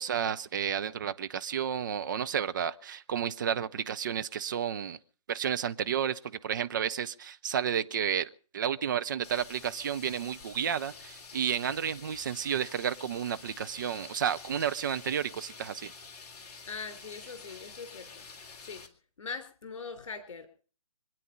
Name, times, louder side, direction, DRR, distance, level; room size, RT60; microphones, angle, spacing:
voice 1, 0.0-5.0 5.3-15.9, right 8 dB, 30° right, 0.7 m, -31 dB
sound 1, 9.2-18.9, left 5 dB, 25° left, 2.1 m, -49 dB
voice 2, 16.7-18.3 18.6-18.8 19.2-20.5, left 5 dB, 55° left, 3.4 m, -41 dB
26.0 x 9.3 x 5.4 m
figure-of-eight pair, 145°, 19 cm